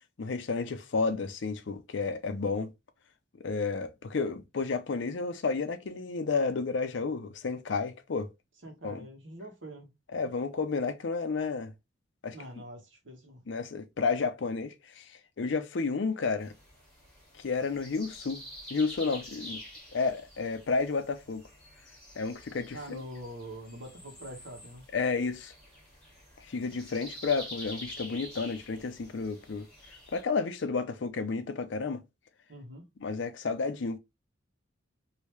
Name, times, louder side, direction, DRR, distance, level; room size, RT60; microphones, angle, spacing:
voice 1, 0.2-2.7 3.4-8.3 8.8-9.1 10.1-11.7 12.2-12.4 13.5-15.1 15.4-16.5 17.4-18.4 18.7-19.6 19.9-21.4 22.2-23.0 24.9-25.5 26.5-29.7 30.1-32.0 33.0-34.0, left 4 dB, 70° left, 0.5 m, -31 dB
voice 2, 8.6-9.9 12.3-13.4 22.7-24.8 32.5-32.8, right 1 dB, 75° right, 1.2 m, -44 dB
sound 1, 16.4-30.2, equal, 5° left, 1.7 m, -48 dB
3.2 x 2.7 x 3.0 m
head